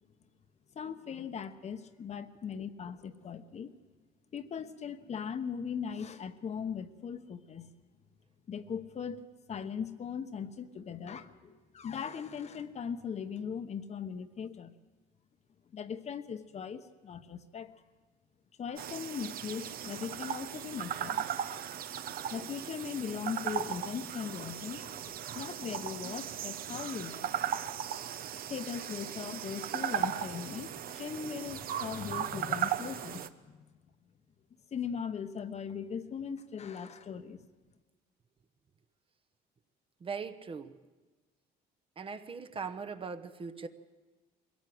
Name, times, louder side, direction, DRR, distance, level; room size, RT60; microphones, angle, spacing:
voice 1, 0.7-3.7 4.3-7.7 8.5-9.2 9.5-14.7 15.7-17.7 18.6-21.2 22.3-27.4 28.5-33.7 34.7-37.4, left 7 dB, 40° left, 9 dB, 1.0 m, -39 dB
sound 1, 18.8-33.3, right 10 dB, 60° right, 0.9 m, -37 dB
voice 2, 40.0-40.8 42.0-43.7, right 5 dB, 30° right, 9 dB, 1.0 m, -40 dB
22.0 x 17.0 x 7.8 m, 1.3 s
cardioid pair, 110°, 17 cm